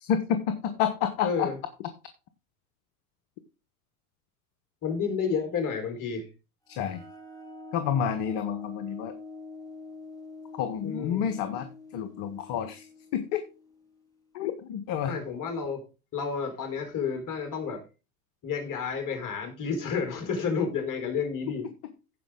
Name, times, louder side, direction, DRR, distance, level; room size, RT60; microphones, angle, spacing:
voice 1, 0.0-1.5 6.7-7.0 7.7-9.1 10.5-13.5 14.3-15.1 21.5-21.6, left 8 dB, 60° left, 9 dB, 1.3 m, -29 dB
voice 2, 1.2-1.6 4.8-6.2 10.8-11.3 15.1-15.8 16.1-17.8 18.4-21.6, left 5 dB, 45° left, 5 dB, 4.2 m, -30 dB
sound 1, 6.7-14.2, left 3 dB, 10° left, 2.6 m, -46 dB
16.0 x 5.3 x 3.7 m, 0.30 s
hypercardioid pair, 90°, 45 cm